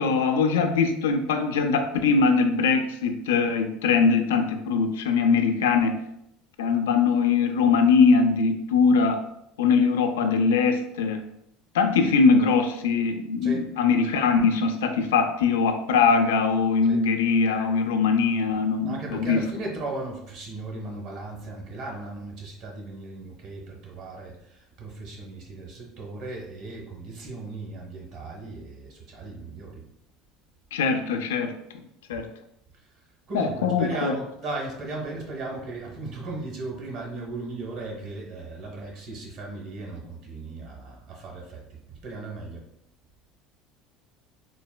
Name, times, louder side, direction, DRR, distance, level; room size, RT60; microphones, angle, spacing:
voice 1, 0.0-6.0 6.6-9.2 9.6-11.2 11.7-19.4 30.7-31.6 32.1-32.3 33.3-34.1, left 5 dB, 90° left, 6 dB, 0.3 m, -22 dB
voice 2, 18.8-29.9 32.8-42.7, right 2 dB, 60° right, 0 dB, 1.1 m, -37 dB
3.9 x 2.1 x 2.2 m, 0.76 s
supercardioid pair, 90°, 0 cm